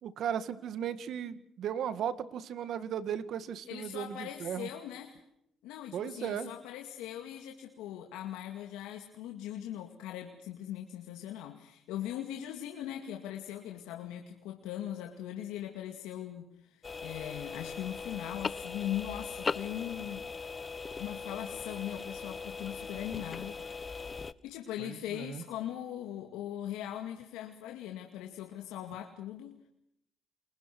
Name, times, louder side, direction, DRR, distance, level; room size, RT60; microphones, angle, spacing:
voice 1, 0.0-4.7 5.9-6.5 24.8-25.4, right 9 dB, 70° right, 14 dB, 1.8 m, -36 dB
voice 2, 3.7-5.2 5.6-20.3 21.0-24.0 24.4-29.6, left 11 dB, 90° left, 3 dB, 2.3 m, -40 dB
sound 1, 16.8-24.3, left 4 dB, 35° left, 1.1 m, -39 dB
29.0 x 22.0 x 6.2 m, 0.74 s
supercardioid pair, 70°, 0 cm